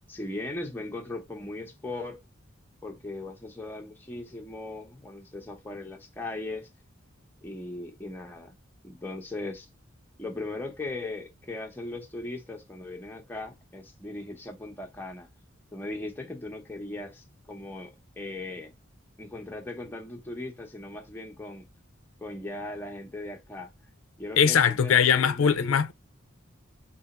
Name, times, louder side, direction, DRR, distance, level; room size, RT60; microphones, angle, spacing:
voice 1, 0.1-2.2 2.8-6.7 7.4-8.6 8.8-9.7 10.2-15.3 15.7-18.7 19.2-21.7 22.2-23.7 24.2-25.8, left 2 dB, 10° left, 0.7 m, -38 dB
voice 2, 24.4-25.9, left 7 dB, 80° left, 0.5 m, -21 dB
3.4 x 2.9 x 4.1 m
head